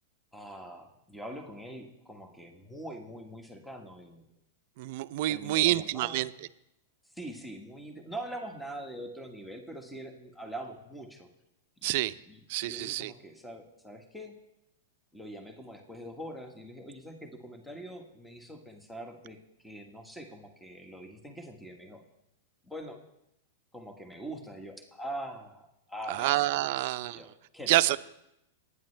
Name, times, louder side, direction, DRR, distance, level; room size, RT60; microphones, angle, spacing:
voice 1, 0.3-4.2 5.3-6.3 7.1-11.3 11.8-11.9 12.2-14.3 15.1-19.4 19.6-22.0 22.6-23.0 23.7-27.7, right 1 dB, 5° left, 3 dB, 1.6 m, -43 dB
voice 2, 4.8-6.3 11.8-12.1 12.5-13.1 26.1-27.2 27.7-28.0, right 16 dB, 60° right, 14 dB, 0.6 m, -27 dB
21.5 x 9.7 x 3.4 m, 0.87 s
hypercardioid pair, 115°, 0 cm